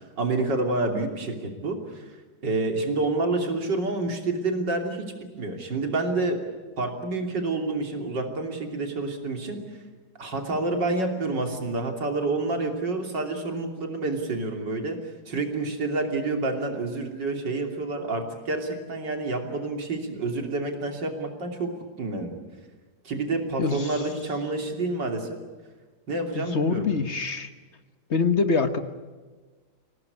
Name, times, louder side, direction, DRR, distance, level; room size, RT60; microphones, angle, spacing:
voice 1, 0.0-2.0 2.4-6.4 6.8-9.6 10.2-15.0 15.3-21.7 22.0-22.3 23.1-25.4 26.1-26.9, right 2 dB, 85° right, 3 dB, 3.7 m, -28 dB
voice 2, 23.6-23.9 26.3-27.5 28.1-28.8, left 4 dB, 45° left, 9 dB, 1.4 m, -24 dB
25.5 x 18.0 x 9.9 m, 1.4 s
omnidirectional pair, 1.9 m